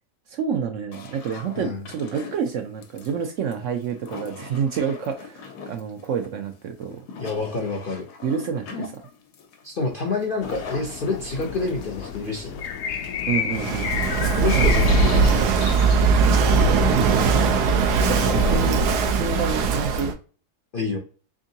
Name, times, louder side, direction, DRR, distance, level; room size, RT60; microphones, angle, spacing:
voice 1, 0.3-7.0 8.2-9.0 13.3-14.1 14.5-14.7 16.2-16.5 18.1-18.8 19.1-20.2, right 7 dB, 65° right, 6 dB, 0.8 m, -28 dB
sound 1, 0.9-13.0, left 5 dB, 90° left, 1.3 m, -41 dB
voice 2, 7.2-8.0 9.6-12.6 14.4-15.6 18.0-18.6 20.7-21.0, left 3 dB, 55° left, 0 dB, 0.6 m, -28 dB
sound 2, 10.4-19.0, left 8 dB, 70° left, 1.0 m, -32 dB
Walk footsteps / Wind / Waves surf, 13.5-20.1, right 4 dB, 85° right, 1.2 m, -20 dB
3.7 x 3.6 x 2.7 m, 0.37 s
omnidirectional pair, 1.7 m